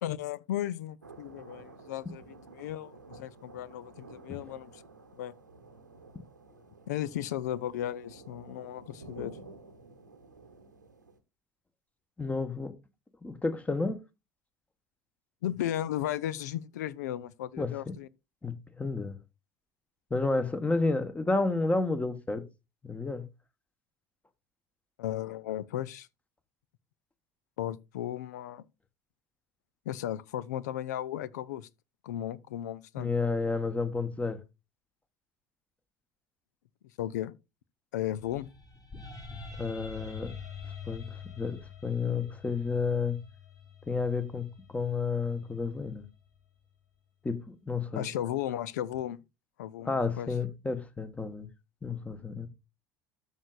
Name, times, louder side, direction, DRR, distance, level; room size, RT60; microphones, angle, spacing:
voice 1, 0.0-2.2 2.5-4.8 5.2-5.3 6.9-9.3 15.4-18.1 25.0-26.1 27.6-28.6 29.9-31.7 32.0-33.1 37.0-37.3 37.9-38.5 47.9-49.2 49.6-50.3, left 12 dB, 70° left, 0.5 m, -35 dB
sound 1, 1.0-11.2, right 3 dB, 90° right, 1.1 m, -52 dB
voice 2, 12.2-12.7 13.2-14.0 17.6-17.9 18.4-19.2 20.1-22.4 22.8-23.2 33.0-34.4 39.6-40.3 40.9-41.1 41.3-43.2 43.9-44.5 44.7-46.1 47.2-48.1 49.8-51.5 51.8-52.5, left 3 dB, 15° left, 1.2 m, -31 dB
sound 2, 38.2-46.4, left 5 dB, 35° left, 3.1 m, -46 dB
13.0 x 6.4 x 2.4 m
figure-of-eight pair, 65°, 10 cm